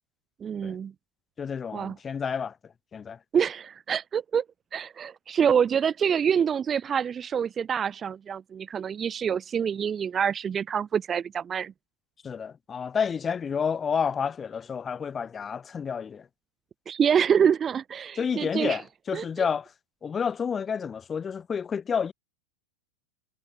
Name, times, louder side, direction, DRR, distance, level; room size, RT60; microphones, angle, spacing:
voice 1, 0.4-0.9 1.7-2.0 3.3-4.4 4.7-11.7 16.9-18.8 19.1-19.5, right 7 dB, 20° right, 0.5 m, -26 dB
voice 2, 1.4-2.5 2.9-3.2 12.2-16.2 18.2-19.7 20.0-22.1, left 6 dB, 20° left, 0.8 m, -30 dB
figure-of-eight pair, 90°, 0 cm